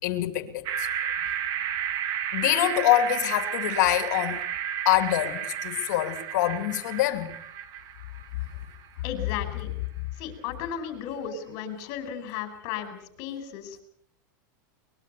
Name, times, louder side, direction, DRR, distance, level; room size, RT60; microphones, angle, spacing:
voice 1, 0.0-0.9 2.3-4.4 4.8-7.3, left 13 dB, 65° left, 2.8 m, -25 dB
sound 1, 0.7-8.9, right 9 dB, 40° right, 1.7 m, -32 dB
voice 2, 9.0-9.7 10.2-13.8, left 8 dB, 45° left, 5.1 m, -35 dB
23.0 x 21.0 x 7.0 m
supercardioid pair, 145°, 10 cm